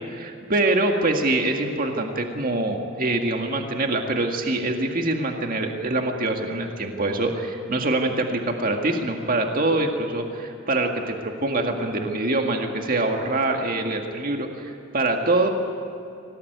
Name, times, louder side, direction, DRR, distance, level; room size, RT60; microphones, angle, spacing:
voice 1, 0.1-15.5, right 2 dB, 45° right, 3 dB, 1.9 m, -24 dB
24.5 x 18.0 x 9.4 m, 2.7 s
head